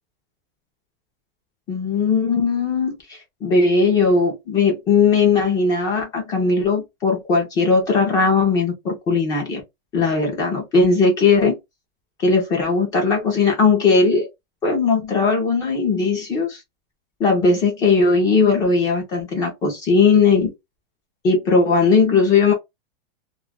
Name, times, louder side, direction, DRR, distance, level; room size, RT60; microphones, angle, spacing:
voice 1, 1.7-9.6 9.9-11.5 12.2-14.3 14.6-16.6 17.2-20.5 21.2-22.5, left 4 dB, 10° left, 0.4 m, -18 dB
2.3 x 2.1 x 3.5 m
supercardioid pair, 165°, 30 cm